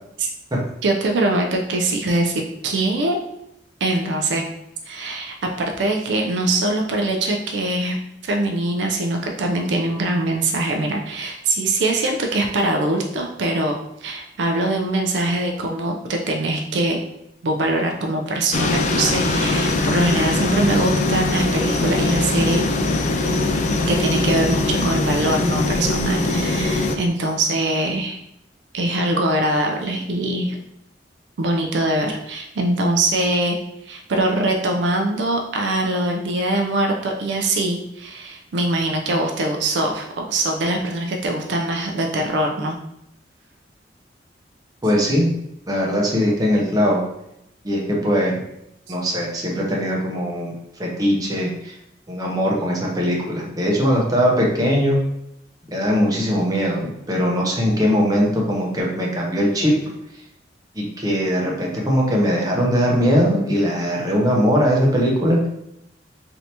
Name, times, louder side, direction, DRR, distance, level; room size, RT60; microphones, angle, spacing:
voice 1, 0.8-3.2 3.8-4.4 4.9-8.0 8.2-13.7 14.0-17.0 17.4-22.6 23.9-28.2 28.7-30.6 31.4-33.6 33.8-42.8, right 2 dB, 75° right, 2 dB, 0.4 m, -22 dB
sound 1, 18.5-27.0, left 2 dB, 40° left, 0.3 m, -21 dB
voice 2, 44.8-45.3 45.7-47.0 47.6-48.4 48.9-51.8 52.1-55.0 55.7-59.7 60.7-65.5, equal, 20° right, -2 dB, 0.7 m, -20 dB
3.3 x 2.7 x 2.8 m, 0.79 s
head